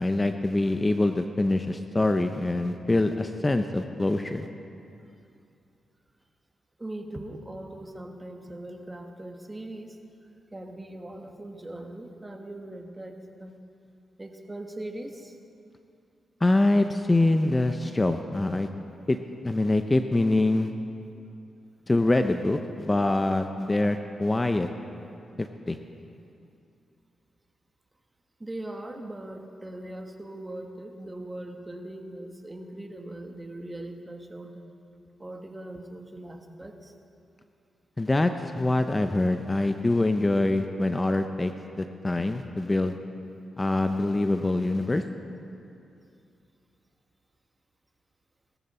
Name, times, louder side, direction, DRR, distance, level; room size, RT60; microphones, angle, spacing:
voice 1, 0.0-4.5 16.4-18.7 19.1-19.2 19.4-20.7 21.9-24.7 25.4-25.8 38.0-41.5 41.8-43.0 43.6-45.0, left 2 dB, 25° left, 7 dB, 0.7 m, -24 dB
voice 2, 6.8-9.9 10.5-13.1 13.4-13.5 14.2-15.3 28.4-34.7 35.2-36.7, right 1 dB, 20° right, 4 dB, 1.6 m, -40 dB
18.5 x 14.5 x 4.4 m, 2.7 s
cardioid pair, 60°, 0 cm